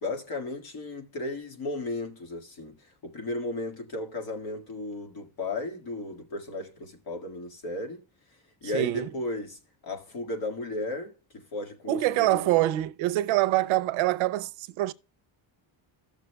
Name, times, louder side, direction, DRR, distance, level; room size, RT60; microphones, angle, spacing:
voice 1, 0.0-8.0 8.6-12.6, left 2 dB, 50° left, 1.9 m, -35 dB
voice 2, 8.7-9.1 11.9-14.9, right 16 dB, 85° right, 0.6 m, -25 dB
15.5 x 6.5 x 2.2 m
cardioid pair, 140°, 46 cm